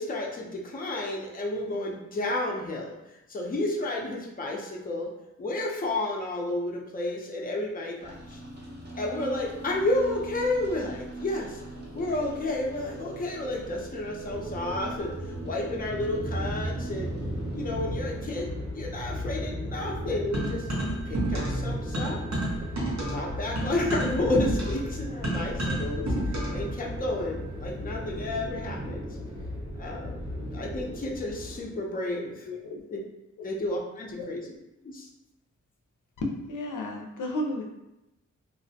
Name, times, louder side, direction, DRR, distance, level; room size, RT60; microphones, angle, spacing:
voice 1, 0.0-3.0 3.3-5.1 5.4-8.4 9.0-11.6 11.9-15.1 15.5-17.1 17.5-20.7 21.1-22.2 23.1-29.0 29.8-30.1 30.5-32.5 32.9-33.0 33.4-34.6 34.8-35.1, left 2 dB, 30° left, -2 dB, 0.5 m, -31 dB
sound 1, 8.0-18.2, right 2 dB, 35° right, 0.7 m, -41 dB
sound 2, 14.2-31.7, equal, 85° right, 0.9 m, -35 dB
sound 3, 20.3-21.7 21.9-26.7, right 1 dB, 60° right, 0.9 m, -30 dB
voice 2, 32.4-32.8 34.2-34.3 36.2-37.6, left 1 dB, 85° left, 0 dB, 0.5 m, -32 dB
2.4 x 2.0 x 2.7 m, 0.93 s
wide cardioid pair, 90°, 30 cm